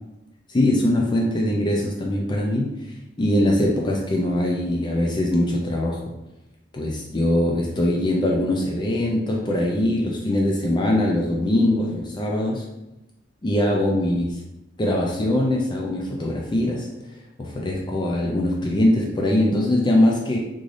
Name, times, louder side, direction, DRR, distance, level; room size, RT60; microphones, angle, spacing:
voice 1, 0.5-2.8 3.2-6.0 6.7-12.6 13.4-14.4 14.8-16.9 17.4-20.4, left 1 dB, 25° left, -1 dB, 0.4 m, -22 dB
3.7 x 3.2 x 2.5 m, 0.95 s
head